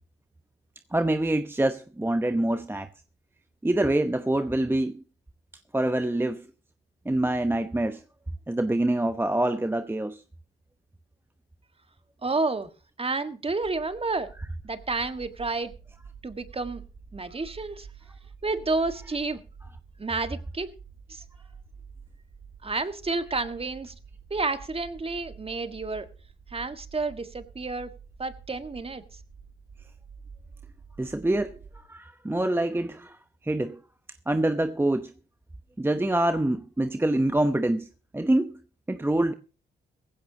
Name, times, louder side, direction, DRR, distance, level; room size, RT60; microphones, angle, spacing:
voice 1, 0.9-2.9 3.6-5.0 5.7-6.4 7.0-8.0 8.5-10.2 31.0-33.2 33.4-33.8 34.3-35.1 35.8-37.9 38.1-38.6 38.9-39.3, right 1 dB, 10° right, 0.9 m, -25 dB
voice 2, 12.2-12.7 13.0-14.3 14.6-15.7 16.2-16.8 17.1-17.9 18.4-19.4 20.0-20.7 21.1-21.2 22.6-23.9 24.3-26.1 26.5-27.9 28.2-29.0, right 3 dB, 30° right, 1.7 m, -30 dB
sound 1, 13.6-31.8, right 5 dB, 55° right, 2.4 m, -48 dB
17.5 x 15.5 x 2.9 m
supercardioid pair, 55°, 20 cm